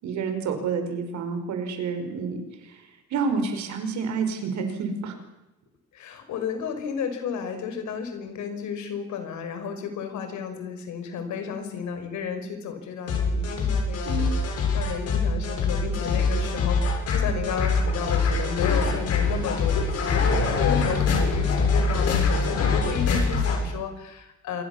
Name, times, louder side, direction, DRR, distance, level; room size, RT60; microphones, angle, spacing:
voice 1, 0.0-5.2 14.0-14.3, right 5 dB, 65° right, 6 dB, 5.1 m, -29 dB
voice 2, 5.9-14.4 14.7-24.6, left 6 dB, 70° left, 7 dB, 5.5 m, -33 dB
sound 1, 13.1-23.6, left 4 dB, 55° left, 7.1 m, -24 dB
27.0 x 23.0 x 7.2 m, 1.0 s
cardioid pair, 150°, 30 cm